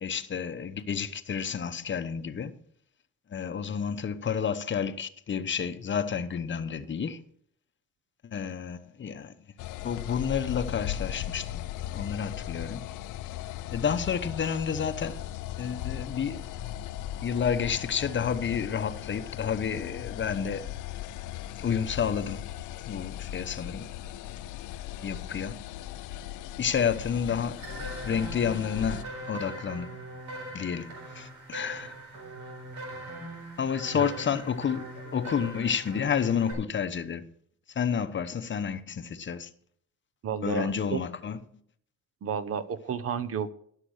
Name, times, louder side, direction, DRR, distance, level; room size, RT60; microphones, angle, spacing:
voice 1, 0.0-2.6 3.3-7.2 8.3-9.3 9.8-11.7 11.9-12.9 13.7-15.2 15.6-16.5 17.2-20.7 21.6-22.5 22.9-23.9 24.8-25.6 26.6-30.0 30.5-31.9 33.6-37.3 37.7-39.5 40.4-41.4, left 7 dB, 40° left, 0.8 m, -30 dB
sound 1, 9.6-29.0, left 12 dB, 90° left, 0.5 m, -38 dB
sound 2, 27.6-36.5, right 2 dB, 80° right, 4.1 m, -41 dB
voice 2, 40.2-41.0 42.2-43.5, right 7 dB, 50° right, 0.8 m, -31 dB
12.0 x 6.5 x 6.3 m
cardioid pair, 90°, 30 cm